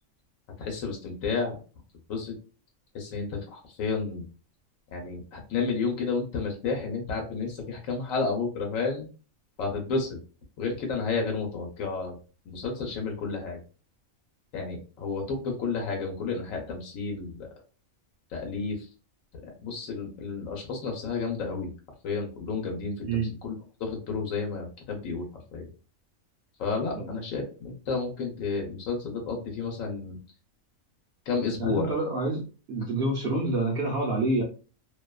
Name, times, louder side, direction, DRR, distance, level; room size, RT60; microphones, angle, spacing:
voice 1, 0.6-1.6 2.1-2.3 2.9-4.3 4.9-9.1 9.6-10.1 10.6-12.2 12.5-13.6 14.5-17.4 18.3-18.9 19.6-21.7 22.0-23.5 23.8-25.3 25.5-25.7 26.6-30.2 31.3-31.9, left 4 dB, 85° left, 1 dB, 1.1 m, -31 dB
voice 2, 31.7-32.4 32.7-34.4, right 2 dB, 60° right, -2 dB, 0.7 m, -27 dB
2.6 x 2.2 x 2.2 m, 0.36 s
omnidirectional pair, 1.4 m